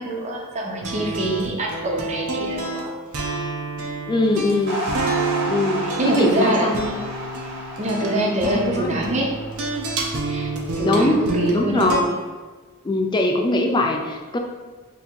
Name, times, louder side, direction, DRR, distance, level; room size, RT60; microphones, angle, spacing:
voice 1, 0.0-2.9 5.8-6.7 7.8-9.3 10.2-11.9, right 1 dB, 30° right, -1 dB, 0.6 m, -25 dB
sound 1, 0.8-12.0, right 3 dB, 85° right, 0.6 m, -28 dB
voice 2, 4.1-4.8 5.4-7.0 8.4-9.0 10.8-12.2 12.8-14.4, left 2 dB, 20° left, 2 dB, 0.3 m, -22 dB
sound 2, 4.7-11.2, right 1 dB, 55° right, 0.9 m, -32 dB
2.7 x 2.6 x 4.2 m, 1.3 s
head